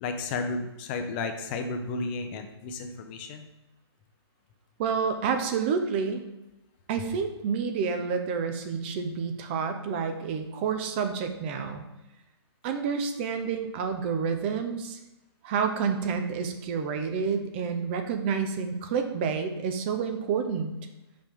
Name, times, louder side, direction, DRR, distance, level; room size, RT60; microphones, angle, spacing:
voice 1, 0.0-3.5, left 3 dB, 25° left, 6 dB, 0.6 m, -33 dB
voice 2, 4.8-6.2 6.9-11.8 12.6-15.0 15.4-20.7, right 6 dB, 25° right, 7 dB, 0.6 m, -29 dB
5.7 x 5.1 x 3.5 m, 0.99 s
hypercardioid pair, 155°, 14 cm